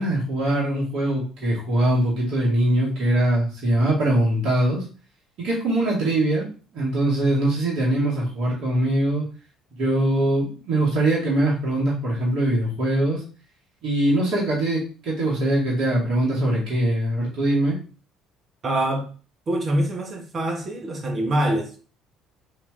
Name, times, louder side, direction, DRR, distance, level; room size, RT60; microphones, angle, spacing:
voice 1, 0.0-4.8 5.4-6.5 6.7-9.3 9.8-13.2 13.8-17.8, right 1 dB, 60° right, 2.2 m, -22 dB
voice 2, 18.6-19.1 19.5-21.8, right 1 dB, 40° right, 1.3 m, -24 dB
3.8 x 3.0 x 3.7 m
hypercardioid pair, 60°, 0 cm